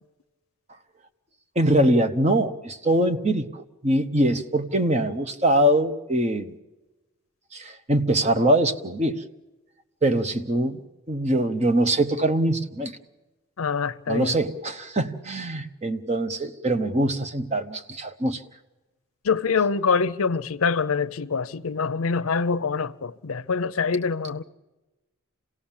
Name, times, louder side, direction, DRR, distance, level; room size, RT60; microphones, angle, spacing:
voice 1, 1.6-6.5 7.5-9.2 10.0-10.8 11.1-13.0 14.1-18.4, right 1 dB, 30° right, 1.0 m, -23 dB
voice 2, 13.6-14.4 19.2-24.4, left 5 dB, 80° left, 0.6 m, -25 dB
27.0 x 17.5 x 7.3 m
head